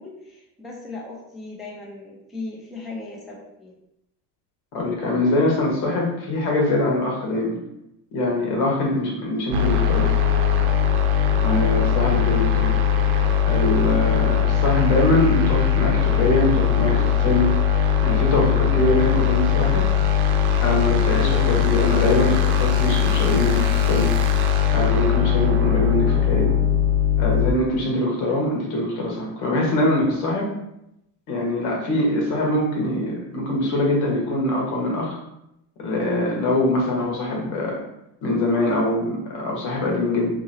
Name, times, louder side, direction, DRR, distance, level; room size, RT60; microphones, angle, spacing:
voice 1, 0.0-3.7, left 3 dB, ahead, -3 dB, 0.4 m, -37 dB
voice 2, 4.7-7.6 8.1-10.1 11.4-12.7 13.5-17.5 18.0-19.8 20.6-24.1 24.7-26.6 27.2-30.5 31.3-35.2 35.8-37.8 38.2-40.3, left 1 dB, 75° left, -2 dB, 1.3 m, -23 dB
sound 1, 9.5-27.5, left 8 dB, 55° right, 0.6 m, -20 dB
2.9 x 2.7 x 2.7 m, 0.83 s
cardioid pair, 110°, 45 cm